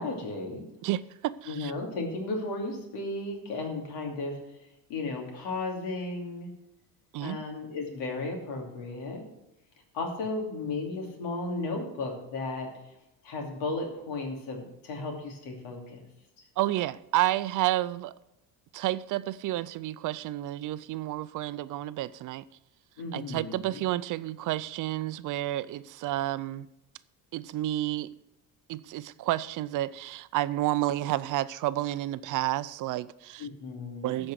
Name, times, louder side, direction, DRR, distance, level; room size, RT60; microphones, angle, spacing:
voice 1, 0.0-0.6 1.5-4.4 4.9-6.5 7.2-9.3 9.9-12.7 13.2-16.0 23.0-23.8 33.4-34.2, left 3 dB, 90° left, 2.9 m, -34 dB
voice 2, 0.8-1.7 7.1-7.4 16.6-18.1 18.7-22.4 23.1-26.7 27.3-28.1 28.7-33.5 34.0-34.3, right 15 dB, 50° right, 0.4 m, -30 dB
13.5 x 5.3 x 6.4 m
cardioid pair, 140°, 40 cm